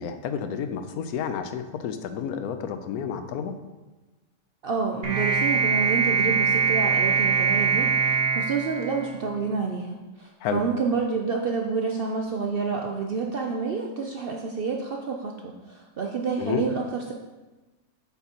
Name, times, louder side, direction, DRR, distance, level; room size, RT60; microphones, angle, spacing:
voice 1, 0.0-3.6 10.4-10.6 16.4-16.6, left 7 dB, 90° left, 9 dB, 1.1 m, -30 dB
voice 2, 4.6-17.1, right 4 dB, 65° right, 1 dB, 0.5 m, -28 dB
sound 1, 5.0-9.5, right 5 dB, 45° right, 1.3 m, -23 dB
7.9 x 5.9 x 2.9 m, 1.2 s
omnidirectional pair, 1.5 m